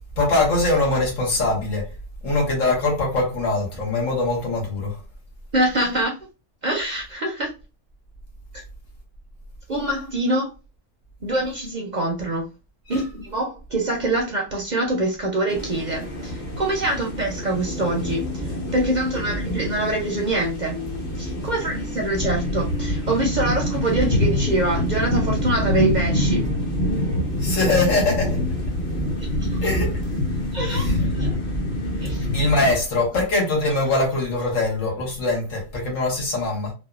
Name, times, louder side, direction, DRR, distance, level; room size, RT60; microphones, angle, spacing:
voice 1, 0.2-1.9 2.2-5.0 12.9-13.0 27.4-28.4 29.6-30.0 30.7-31.0 32.3-36.7, left 2 dB, 90° left, 1.4 m, -22 dB
voice 2, 5.5-6.1 6.6-7.5 9.7-10.5 11.2-12.5 12.9-20.8 21.2-26.4 29.5-29.6 30.5-31.3 32.0-32.3 34.3-34.5, right 1 dB, 50° right, 0.5 m, -25 dB
sound 1, 15.5-32.8, left 1 dB, 45° left, 0.8 m, -25 dB
3.4 x 2.0 x 2.3 m
omnidirectional pair, 1.3 m